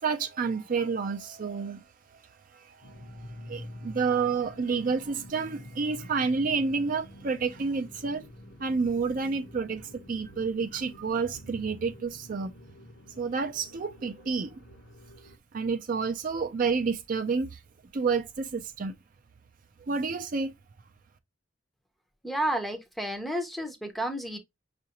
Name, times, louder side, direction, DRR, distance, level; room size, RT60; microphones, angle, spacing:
voice 1, 0.0-1.8 2.8-2.9 3.5-8.2 8.6-12.5 13.2-14.5 15.5-17.5 17.9-18.9 19.9-20.5, right 5 dB, 45° right, 0.4 m, -29 dB
sound 1, 2.8-15.4, left 1 dB, 55° left, 0.8 m, -48 dB
voice 2, 22.2-24.4, right 1 dB, ahead, 0.6 m, -31 dB
5.6 x 2.5 x 2.8 m
head